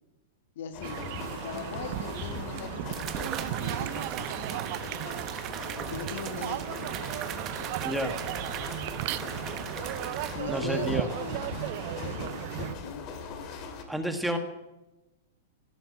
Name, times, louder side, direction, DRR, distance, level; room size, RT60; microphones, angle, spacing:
voice 1, 0.6-1.0 1.3-4.5 5.8-7.0 10.3-11.7 12.0-13.5, left 6 dB, 70° left, 7 dB, 1.8 m, -40 dB
sound 1, 0.7-13.8, left 5 dB, 40° left, 2.6 m, -41 dB
sound 2, 0.8-12.8, right 16 dB, 50° right, 0.5 m, -36 dB
sound 3, 1.9-2.0 2.9-10.3, right 10 dB, 35° right, 1.3 m, -39 dB
voice 2, 7.8-8.2 10.5-11.1 13.9-14.4, right 1 dB, ahead, 6 dB, 1.5 m, -30 dB
17.0 x 7.1 x 9.2 m, 0.99 s
hypercardioid pair, 130°, 0 cm